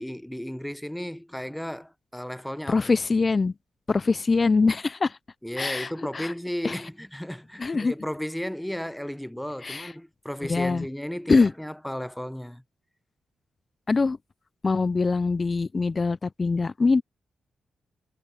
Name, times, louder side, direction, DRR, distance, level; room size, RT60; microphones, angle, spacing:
voice 1, 0.0-2.8 5.4-12.6, equal, 5° left, 0.7 m, -34 dB
voice 2, 2.7-3.5 3.9-5.2 5.6-6.3 6.6-6.8 7.6-7.9 9.6-9.9 10.4-10.9 11.3-11.5 13.9-14.2 14.6-17.0, left 4 dB, 40° left, 0.4 m, -23 dB
cardioid pair, 60°, 0 cm